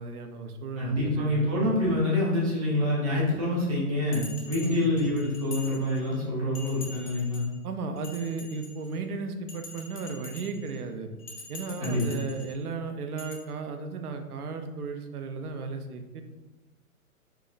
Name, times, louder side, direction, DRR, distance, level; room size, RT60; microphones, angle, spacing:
voice 1, 0.0-1.5 4.6-5.0 7.6-11.1 11.5-16.2, right 4 dB, 70° right, 6 dB, 0.6 m, -35 dB
voice 2, 0.8-7.5 11.8-12.0, left 1 dB, 25° right, -5 dB, 0.7 m, -26 dB
Bell, 4.1-6.2 6.5-7.5 8.0-9.0 9.5-10.7 11.2-12.5 13.2-13.3, left 3 dB, 25° left, 0.4 m, -44 dB
4.6 x 2.0 x 2.4 m, 1.1 s
hypercardioid pair, 150°, 46 cm